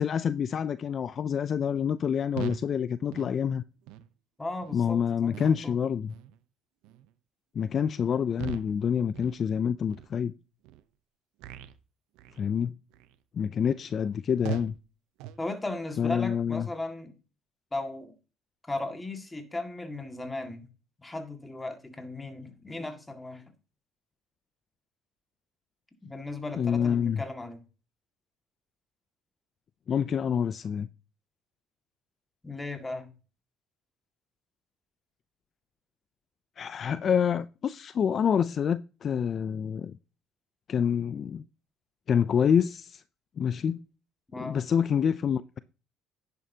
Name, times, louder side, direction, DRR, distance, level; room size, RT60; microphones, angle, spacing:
voice 1, 0.0-3.6 4.7-6.1 7.6-10.3 12.4-12.7 13.3-14.7 16.0-16.7 26.6-27.2 29.9-30.9 36.6-39.9 40.7-41.4 42.1-43.0 43.4-43.8 44.3-45.6, left 7 dB, 45° left, 0.4 m, -27 dB
sound 1, 2.4-2.7 3.1-3.3 3.9-4.1 4.6-4.8 5.3-5.7 6.1-6.4 6.8-7.1 7.6-7.8 8.3-8.8 9.1-9.5 9.9-10.1 10.6-10.8 11.4-11.8 12.2-12.5 12.9-13.2 13.7-13.8 14.4-14.8 15.2-15.4, right 12 dB, 85° right, 0.7 m, -40 dB
voice 2, 4.4-5.8 15.4-17.1 17.7-18.1 18.6-20.7 21.0-23.5 26.0-27.6 32.4-33.1 44.3-44.6, left 2 dB, 15° left, 1.9 m, -36 dB
10.5 x 9.3 x 2.8 m
cardioid pair, 95°, 0 cm